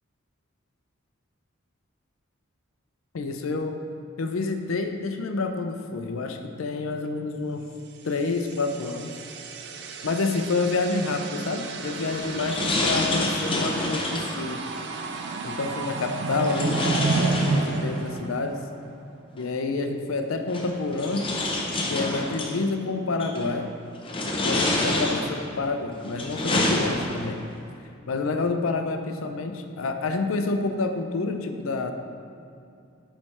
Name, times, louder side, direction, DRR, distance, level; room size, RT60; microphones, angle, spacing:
voice 1, 3.1-3.8 4.2-7.7 8.0-9.2 10.0-14.6 15.4-18.6 19.3-21.2 21.9-23.7 24.4-27.4 28.1-31.9, left 3 dB, 80° left, 6 dB, 0.5 m, -28 dB
sound 1, 8.2-18.9, right 3 dB, 60° right, 0.5 m, -31 dB
sound 2, 11.8-14.4 16.4-18.0 19.4-19.5 20.5-22.6 23.2-23.6 24.0-25.5 26.0-27.4, left 1 dB, 25° left, 0.7 m, -28 dB
9.1 x 3.3 x 4.2 m, 2.5 s
head